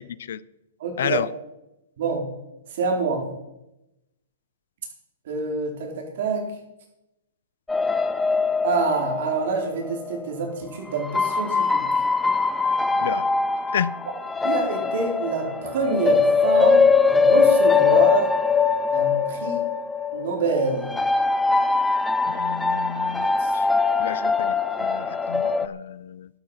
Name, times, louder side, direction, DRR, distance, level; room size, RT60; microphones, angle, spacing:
voice 1, 0.1-0.4 1.0-1.3 13.0-13.3 13.7-13.9 22.2-23.3 23.5-23.7 24.0-26.3, left 9 dB, 65° left, 0.6 m, -30 dB
voice 2, 0.8-1.3 2.0-2.3 2.8-3.2 5.3-6.5 8.6-11.8 14.4-18.3 18.9-19.6 20.1-21.0 23.2-23.5, right 4 dB, 50° right, 4.4 m, -26 dB
sound 1, 7.7-10.2 11.0-25.7, left 4 dB, 5° left, 0.6 m, -22 dB
12.5 x 12.0 x 5.8 m
hypercardioid pair, 165°, 0 cm